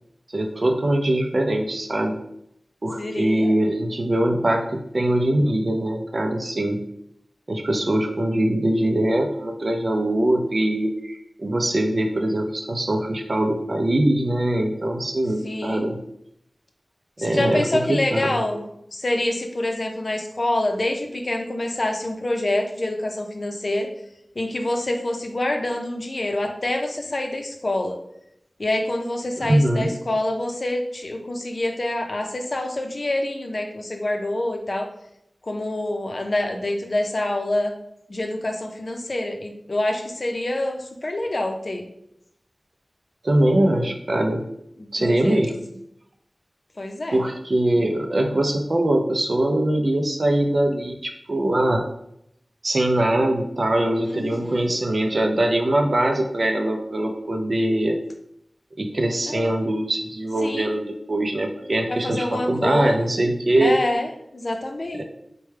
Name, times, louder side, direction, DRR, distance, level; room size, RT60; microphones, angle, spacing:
voice 1, 0.3-2.2 2.8-6.8 7.5-16.0 17.2-18.4 29.4-29.9 43.2-44.5 44.9-45.6 47.1-51.9 52.6-58.0 58.8-63.8 65.0-65.1, right 1 dB, 60° right, 3 dB, 0.4 m, -22 dB
voice 2, 3.0-3.5 15.4-15.9 17.2-18.7 18.9-23.9 24.4-28.0 28.6-34.9 35.4-37.7 38.1-41.8 44.8-45.4 46.8-47.2 54.0-54.7 59.3-59.5 60.4-60.7 61.9-63.3 63.6-65.0, left 1 dB, 60° left, 4 dB, 0.5 m, -26 dB
4.4 x 2.1 x 3.3 m, 0.77 s
wide cardioid pair, 70°, 0 cm